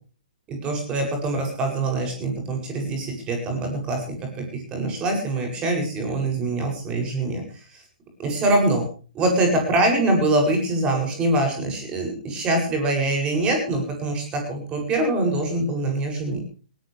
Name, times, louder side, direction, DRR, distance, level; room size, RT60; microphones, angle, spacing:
voice 1, 0.5-4.2 4.5-7.8 8.2-8.8 9.2-16.4, right 2 dB, 20° right, 2 dB, 8.0 m, -24 dB
20.0 x 18.5 x 3.5 m, 0.38 s
figure-of-eight pair, 125°, 5 cm